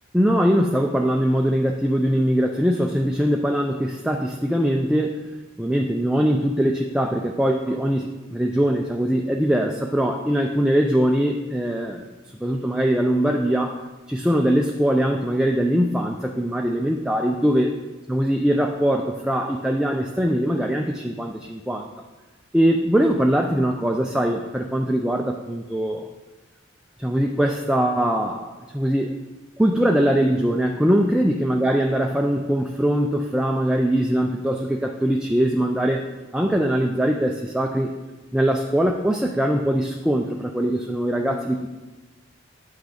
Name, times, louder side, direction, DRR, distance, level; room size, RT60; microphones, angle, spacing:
voice 1, 0.1-5.2 5.6-12.1 12.4-13.8 14.1-17.7 18.1-21.9 22.5-26.1 27.0-29.2 29.6-36.1 36.3-37.9 38.3-41.7, equal, 5° right, 1 dB, 0.4 m, -22 dB
9.0 x 6.0 x 5.0 m, 1.2 s
head